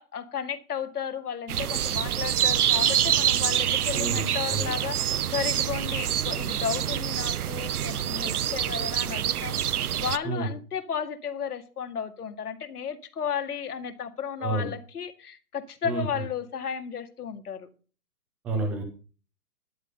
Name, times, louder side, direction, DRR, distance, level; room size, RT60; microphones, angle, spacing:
voice 1, 0.0-9.6 10.0-17.7, left 7 dB, 80° left, 7 dB, 2.2 m, -34 dB
sound 1, 1.5-10.2, right 10 dB, 75° right, 0.8 m, -26 dB
voice 2, 3.9-4.7 10.2-10.5 14.4-14.7 15.8-16.2 18.4-18.8, right 3 dB, 5° right, 4 dB, 0.5 m, -30 dB
12.0 x 9.5 x 5.3 m, 0.37 s
hypercardioid pair, 150°, 45 cm